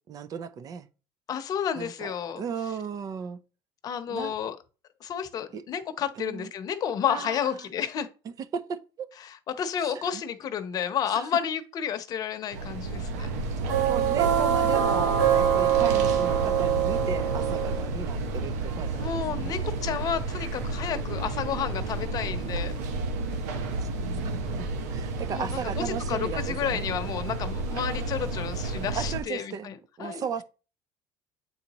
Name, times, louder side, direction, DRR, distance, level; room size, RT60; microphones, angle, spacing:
voice 1, 0.1-0.9 1.8-3.4 4.1-4.4 5.5-5.6 6.2-6.5 7.1-7.5 8.4-9.1 9.8-10.2 11.1-11.2 13.8-19.1 19.4-19.6 24.5-26.9 28.9-29.7 30.0-30.4, right 7 dB, 45° right, 0.6 m, -35 dB
voice 2, 1.3-2.4 3.8-4.6 5.0-8.1 9.2-13.3 18.9-22.7 25.3-30.3, left 8 dB, 45° left, 0.9 m, -31 dB
sound 1, 12.5-29.2, right 6 dB, 90° right, 1.0 m, -28 dB
8.4 x 4.0 x 3.0 m
supercardioid pair, 100°, 9 cm